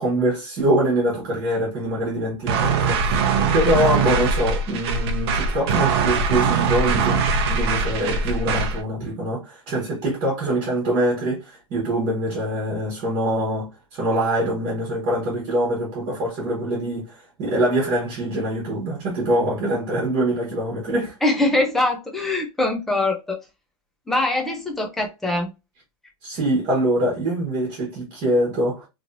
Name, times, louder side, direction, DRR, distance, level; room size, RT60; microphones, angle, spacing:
voice 1, 0.0-3.3 3.5-7.2 7.5-21.2 26.2-28.9, right 1 dB, 25° right, 1.2 m, -24 dB
sound 1, 2.5-8.8, right 4 dB, 45° right, 0.6 m, -22 dB
voice 2, 21.2-23.4 24.1-25.5, left 2 dB, ahead, 0.3 m, -22 dB
2.9 x 2.7 x 2.5 m
supercardioid pair, 170°, 18 cm